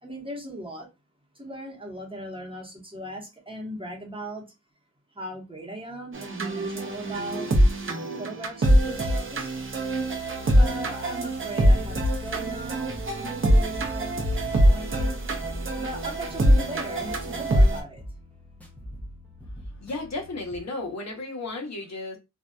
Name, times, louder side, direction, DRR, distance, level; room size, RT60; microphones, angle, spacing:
voice 1, 0.0-0.9 1.3-4.5 5.1-7.5 8.2-9.5 10.4-14.2 14.5-15.2 15.8-18.0, right 1 dB, 15° right, 0.9 m, -38 dB
sound 1, 6.1-17.8, equal, 40° right, 0.6 m, -23 dB
sound 2, 11.9-20.6, equal, 5° left, 0.7 m, -43 dB
voice 2, 19.8-22.2, left 2 dB, 60° left, 0.8 m, -34 dB
2.6 x 2.2 x 2.2 m
wide cardioid pair, 105°, 31 cm